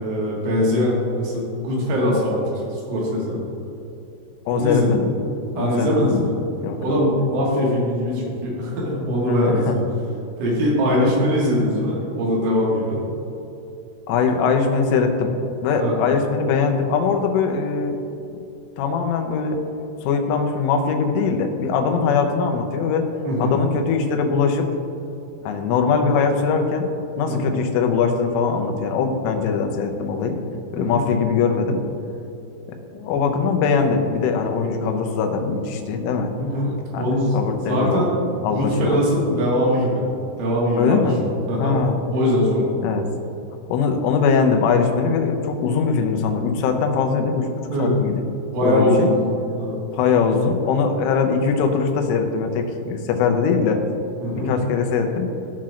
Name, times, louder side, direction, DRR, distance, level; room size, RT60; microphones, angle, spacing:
voice 1, 0.0-2.4 2.7-3.4 4.5-4.9 5.6-6.2 6.8-9.8 10.4-13.0 15.8-16.0 23.2-23.6 27.3-27.6 30.8-31.1 36.4-37.4 37.7-38.1 38.5-40.0 40.4-41.1 41.5-41.8 42.1-42.7 47.7-47.9 48.5-49.1 49.6-49.8 54.2-54.5, equal, 80° right, -5 dB, 4.2 m, -21 dB
voice 2, 4.5-5.1 5.5-6.3 6.6-7.0 9.3-9.8 11.0-11.1 14.1-15.3 15.6-18.0 18.8-19.6 20.0-23.1 23.4-24.7 25.4-26.9 27.2-30.4 30.7-31.8 32.9-36.3 36.9-38.1 38.4-39.0 40.8-41.2 41.6-42.0 42.8-43.1 43.7-47.5 47.8-48.1 48.6-49.1 49.9-53.8 54.4-55.3, left 5 dB, 90° left, 4 dB, 3.4 m, -21 dB
15.5 x 5.9 x 2.5 m, 2.8 s
omnidirectional pair, 5.6 m